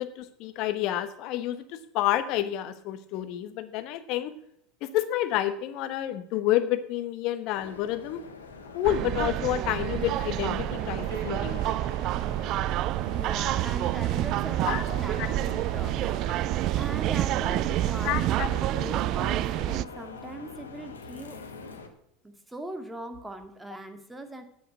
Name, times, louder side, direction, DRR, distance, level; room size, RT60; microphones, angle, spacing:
voice 1, 0.0-1.6 1.9-4.3 4.8-8.2 8.7-11.8 14.6-15.3 18.0-18.5, left 13 dB, 55° left, 10 dB, 1.2 m, -29 dB
sound 1, 7.5-21.9, left 4 dB, 85° left, 1.5 m, -44 dB
sound 2, 8.8-19.9, right 15 dB, 50° right, 0.3 m, -28 dB
voice 2, 13.1-21.4 22.2-24.4, right 1 dB, 10° right, 7 dB, 2.1 m, -40 dB
8.9 x 7.8 x 8.1 m, 0.75 s
hypercardioid pair, 80°, 0 cm